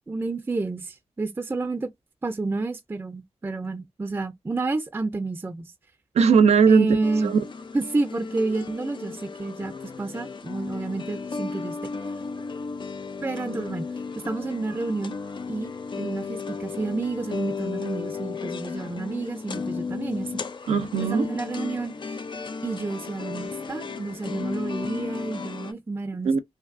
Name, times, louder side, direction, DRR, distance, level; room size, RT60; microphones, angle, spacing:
voice 1, 0.1-1.9 2.2-5.7 6.7-7.3 7.7-11.9 13.2-13.9 14.2-15.2 15.5-15.7 16.0-20.3 21.0-22.2 22.6-26.3, right 3 dB, 20° right, 0.4 m, -30 dB
voice 2, 6.1-7.4 20.7-21.3 26.2-26.4, right 6 dB, 85° right, 0.5 m, -19 dB
sound 1, 7.0-25.7, left 5 dB, 50° left, 0.4 m, -34 dB
2.6 x 2.5 x 2.5 m
wide cardioid pair, 85°, 11 cm